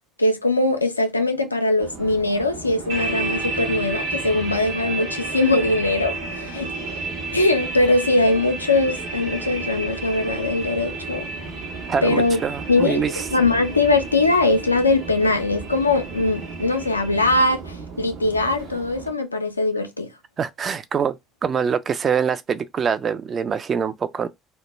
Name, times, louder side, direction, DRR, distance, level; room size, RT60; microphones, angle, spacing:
voice 1, 0.2-6.7 7.3-11.3 12.0-12.4 12.7-20.1, left 2 dB, 90° left, 0.3 m, -21 dB
Subway metro underground, 1.8-19.1, right 5 dB, 65° right, 0.7 m, -37 dB
sound 1, 2.9-17.4, right 3 dB, 85° right, 0.9 m, -32 dB
voice 2, 11.9-13.2 20.4-21.2 21.4-24.3, right 6 dB, 40° right, 0.3 m, -24 dB
2.2 x 2.0 x 3.1 m
figure-of-eight pair, 55°, 0 cm